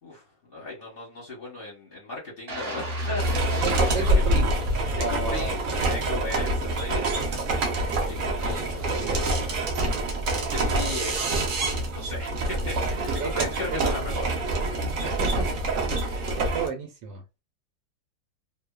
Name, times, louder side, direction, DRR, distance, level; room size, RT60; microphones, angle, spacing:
voice 1, 0.0-4.2 5.0-7.4 8.1-9.4 10.5-11.5 11.9-14.8, left 2 dB, 45° left, 0.7 m, -36 dB
sound 1, 2.5-5.4 5.8-6.0, equal, 40° right, 1.1 m, -32 dB
sound 2, 3.2-16.7, right 2 dB, 65° right, 0.8 m, -26 dB
voice 2, 3.6-4.5 5.0-5.5 8.8-9.2 13.2-13.9 15.0-15.5 16.0-16.3 16.5-17.4, right 5 dB, 85° right, 1.3 m, -33 dB
3.0 x 2.0 x 2.2 m
omnidirectional pair, 2.0 m